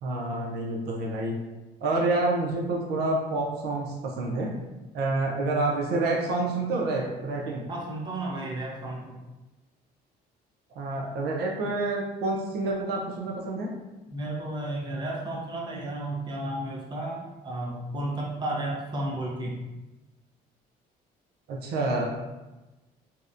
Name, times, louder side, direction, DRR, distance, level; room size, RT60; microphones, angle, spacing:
voice 1, 0.0-1.4 1.8-4.5 4.9-7.6 10.8-13.7 21.5-22.1, right 2 dB, 75° right, -1 dB, 0.5 m, -28 dB
voice 2, 7.7-9.2 14.1-19.6, right 1 dB, 25° right, -2 dB, 0.5 m, -33 dB
2.7 x 2.1 x 2.4 m, 1.1 s
cardioid pair, 110°, 17 cm